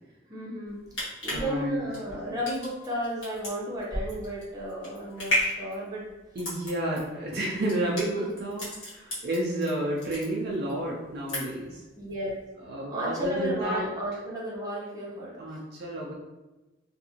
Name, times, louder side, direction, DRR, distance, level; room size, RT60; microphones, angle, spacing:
voice 1, 0.3-0.8 1.2-6.0 12.0-12.3 12.9-15.5, equal, 20° right, -6 dB, 0.7 m, -33 dB
sound 1, 0.7-9.7 10.0-10.7 11.0-11.7 12.1-12.2, left 1 dB, 80° left, 1.3 m, -33 dB
voice 2, 1.3-1.9 6.3-11.8 12.6-13.8 15.4-16.1, right 1 dB, 55° right, -3 dB, 0.4 m, -31 dB
2.6 x 2.5 x 2.7 m, 1.1 s
head